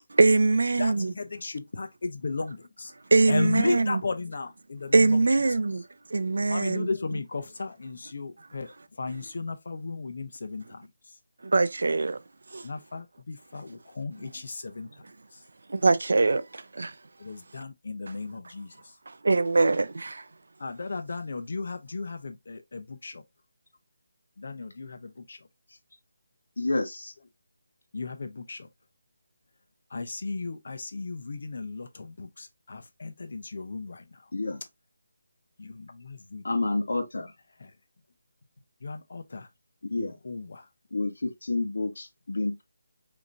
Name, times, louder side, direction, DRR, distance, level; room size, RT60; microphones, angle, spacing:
voice 1, 0.1-1.1 3.1-4.0 4.9-5.8 6.1-6.9 11.4-12.2 12.5-12.6 15.7-16.9 19.2-20.2, right 3 dB, 65° right, 0.4 m, -22 dB
voice 2, 0.8-2.9 3.3-5.2 6.5-10.9 12.6-14.9 15.3-15.4 17.2-18.9 20.6-23.2 24.4-25.4 27.9-28.7 29.9-34.3 35.6-36.5 37.6-37.7 38.8-39.5 39.9-40.7, left 3 dB, 50° left, 0.8 m, -35 dB
voice 3, 26.6-27.1 34.3-34.6 36.4-37.3 39.9-40.2 40.9-42.6, left 2 dB, 80° left, 1.2 m, -29 dB
5.1 x 2.9 x 2.6 m
hypercardioid pair, 175°, 0 cm